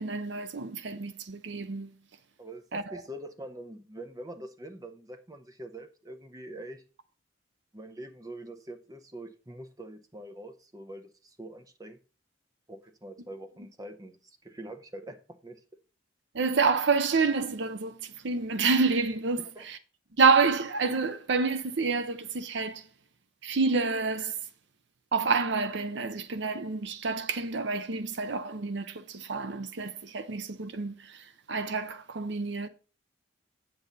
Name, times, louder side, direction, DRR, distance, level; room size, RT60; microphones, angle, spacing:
voice 1, 0.0-1.9 2.7-3.0 16.3-19.8 20.2-22.9 23.4-24.4 25.1-32.7, right 4 dB, 60° right, 0.6 m, -28 dB
voice 2, 2.4-6.8 7.7-12.0 12.7-15.6 19.5-19.6, right 1 dB, 15° right, 0.8 m, -44 dB
8.7 x 7.4 x 4.0 m
head